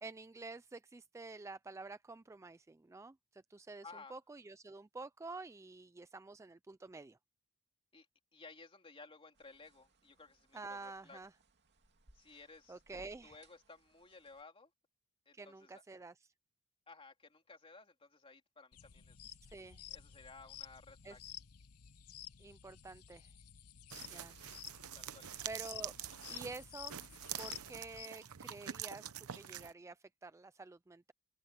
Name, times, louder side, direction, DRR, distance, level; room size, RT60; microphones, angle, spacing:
voice 1, 0.0-3.8 4.1-7.2 10.5-11.3 12.7-13.4 15.3-16.1 19.5-19.8 21.0-21.2 22.4-23.3 24.1-24.3 25.5-25.9 26.3-26.9 27.4-29.1 29.4-31.1, right 3 dB, 15° right, 0.3 m, -49 dB
voice 2, 3.8-4.2 7.9-8.1 8.3-11.2 12.1-12.8 13.2-14.7 15.2-15.8 16.9-19.3 19.9-21.2 24.0-24.6 24.9-25.3, left 3 dB, 25° left, 3.1 m, -57 dB
sound 1, 9.3-14.4, right 1 dB, 50° right, 2.7 m, -68 dB
sound 2, 18.7-28.1, left 11 dB, 90° left, 0.9 m, -52 dB
sound 3, 23.9-29.7, right 10 dB, 70° right, 0.8 m, -46 dB
open air
head